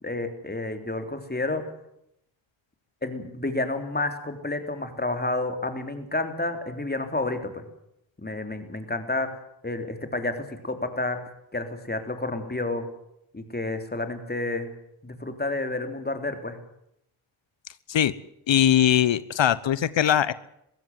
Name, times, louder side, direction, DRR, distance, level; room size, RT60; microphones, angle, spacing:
voice 1, 0.0-1.6 3.0-7.6 8.2-9.4 9.6-11.2 11.5-12.9 13.3-14.7 15.0-16.6, left 2 dB, 20° left, 7 dB, 3.8 m, -30 dB
voice 2, 18.5-20.3, left 10 dB, 65° left, 18 dB, 1.0 m, -21 dB
22.0 x 15.5 x 9.7 m, 0.77 s
cardioid pair, 65°, 49 cm